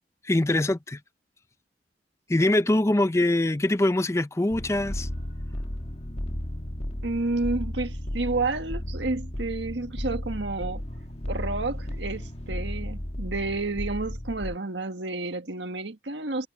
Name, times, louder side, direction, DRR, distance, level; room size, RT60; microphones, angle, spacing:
voice 1, 0.2-1.0 2.3-5.1, left 1 dB, 15° left, 0.5 m, -23 dB
sound 1, 4.5-14.6, left 1 dB, 35° left, 1.4 m, -34 dB
voice 2, 7.0-10.8 11.3-16.5, right 3 dB, 85° right, 1.7 m, -30 dB
head